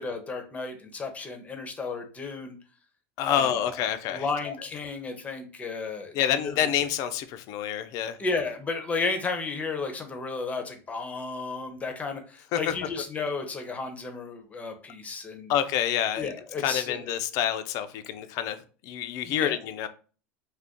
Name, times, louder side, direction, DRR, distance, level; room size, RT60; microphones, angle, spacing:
voice 1, 0.0-2.6 3.3-3.6 4.1-6.7 8.2-15.5 16.2-17.0 19.3-19.6, left 4 dB, 20° left, 5 dB, 0.7 m, -33 dB
voice 2, 3.2-4.5 6.1-8.2 12.5-12.7 15.5-16.3 16.6-18.6 18.8-19.9, left 10 dB, 55° left, 10 dB, 0.4 m, -28 dB
2.5 x 2.3 x 3.5 m, 0.38 s
supercardioid pair, 120°, 7 cm